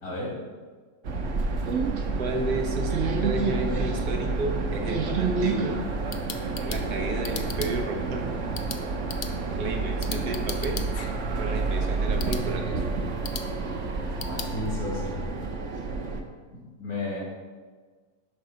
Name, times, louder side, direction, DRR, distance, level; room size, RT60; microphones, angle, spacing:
voice 1, 0.0-0.3 14.2-15.3 16.5-17.2, left 2 dB, 75° left, -5 dB, 3.4 m, -33 dB
sound 1, 1.0-16.2, right 3 dB, 55° right, 1.1 m, -29 dB
voice 2, 2.2-2.9 3.2-5.8 6.6-8.4 9.6-10.8 11.4-12.8, right 2 dB, 90° right, 3 dB, 1.6 m, -32 dB
sound 2, 5.8-14.5, left 6 dB, 55° left, 0.6 m, -41 dB
10.5 x 4.0 x 6.3 m, 1.5 s
omnidirectional pair, 1.6 m